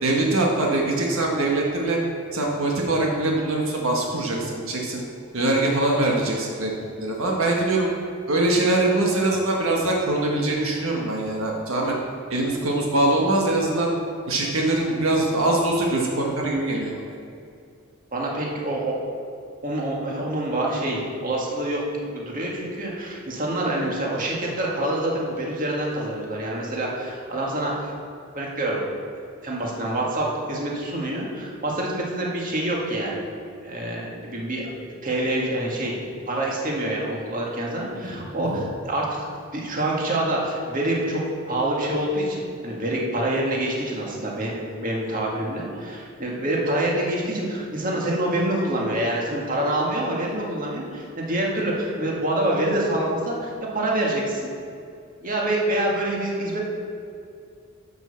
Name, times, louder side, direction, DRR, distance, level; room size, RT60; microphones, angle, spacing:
voice 1, 0.0-2.0 2.3-5.0 5.3-6.7 7.0-7.9 8.3-11.9 12.3-13.9 14.3-17.2 38.0-38.7, right 2 dB, 80° right, -1 dB, 1.4 m, -23 dB
voice 2, 18.1-19.0 19.6-27.9 28.3-28.8 29.4-33.2 33.6-34.7 35.0-36.0 36.3-39.2 39.5-54.4 55.2-56.6, right 1 dB, 40° right, -3 dB, 1.9 m, -26 dB
10.5 x 5.5 x 7.0 m, 2.4 s
head